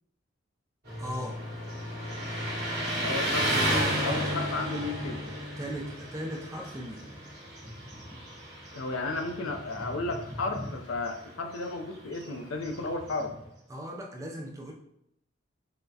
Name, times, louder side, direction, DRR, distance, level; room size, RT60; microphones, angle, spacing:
Motorcycle, 0.8-13.5, equal, 50° right, 1.4 m, -33 dB
voice 1, 1.0-1.4 4.1-4.2 5.6-7.1 13.7-14.7, equal, 15° right, 0 dB, 0.4 m, -38 dB
voice 2, 3.0-5.2 8.7-13.3, left 3 dB, 80° left, 5 dB, 0.5 m, -33 dB
5.6 x 2.0 x 2.7 m, 0.79 s
head